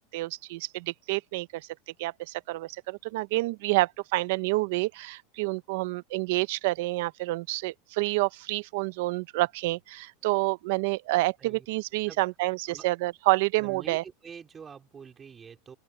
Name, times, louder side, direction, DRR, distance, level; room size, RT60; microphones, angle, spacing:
voice 1, 0.0-1.7 2.0-14.0, right 21 dB, 60° right, 0.6 m, -28 dB
voice 2, 13.6-15.8, right 6 dB, 15° right, 3.7 m, -46 dB
open air
supercardioid pair, 165°, 0 cm